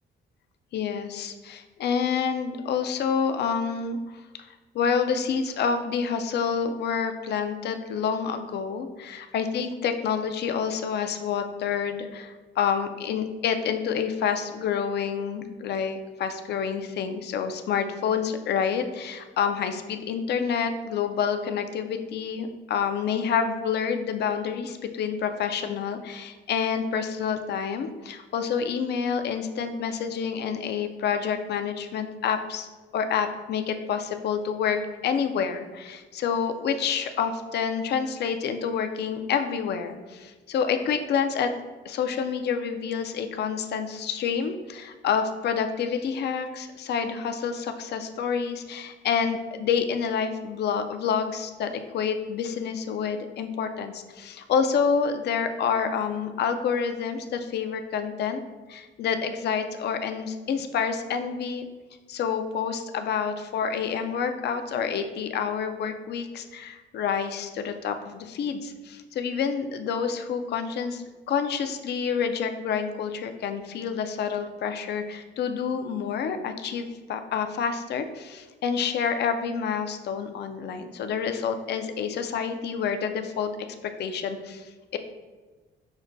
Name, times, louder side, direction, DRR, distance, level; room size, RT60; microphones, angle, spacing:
voice 1, 0.7-4.2 4.7-32.7 32.9-41.5 41.9-58.4 58.7-61.7 62.1-83.5 84.0-85.0, left 6 dB, 60° left, 8 dB, 0.4 m, -28 dB
6.2 x 2.1 x 2.6 m, 1.3 s
cardioid pair, 90°, 20 cm